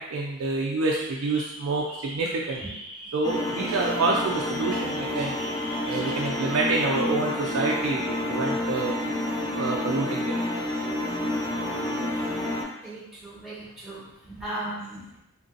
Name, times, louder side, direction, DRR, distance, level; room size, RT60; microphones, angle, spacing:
voice 1, 0.0-2.8 3.1-5.4 5.8-9.0 9.6-10.4, right 3 dB, 70° right, -2 dB, 0.4 m, -27 dB
sound 1, 0.8-7.1, equal, 35° left, 0.8 m, -41 dB
sound 2, 3.2-12.6, left 1 dB, 20° left, 0.5 m, -29 dB
voice 2, 12.8-15.2, right 1 dB, ahead, -7 dB, 1.1 m, -37 dB
2.8 x 2.5 x 3.8 m, 0.83 s
head